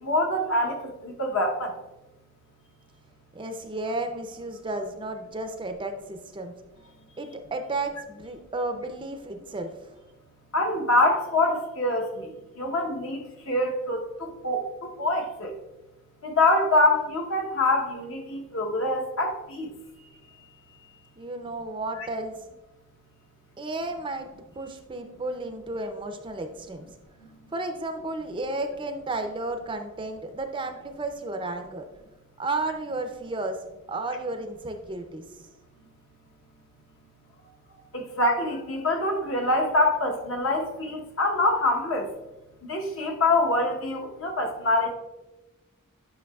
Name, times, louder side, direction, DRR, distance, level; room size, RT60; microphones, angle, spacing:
voice 1, 0.0-1.8 10.5-12.3 12.6-13.2 13.5-15.5 16.2-19.7 22.0-22.1 37.9-42.1 42.7-44.9, left 2 dB, 60° left, 2 dB, 1.0 m, -25 dB
voice 2, 3.3-6.5 7.2-9.7 21.2-22.4 23.6-26.8 27.5-31.8 32.4-33.6 33.9-35.2, right 2 dB, 20° right, 6 dB, 0.5 m, -33 dB
10.0 x 5.8 x 2.3 m, 1.1 s
head